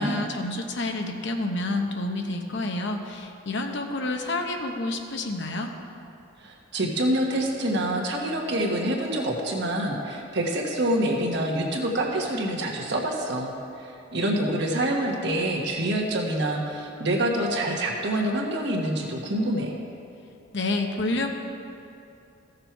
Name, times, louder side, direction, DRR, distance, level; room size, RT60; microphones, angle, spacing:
voice 1, 0.0-5.7 20.5-21.3, left 2 dB, 60° left, 4 dB, 0.9 m, -29 dB
voice 2, 6.4-19.7, right 1 dB, 60° right, 0 dB, 1.5 m, -26 dB
15.0 x 6.7 x 4.6 m, 2.8 s
head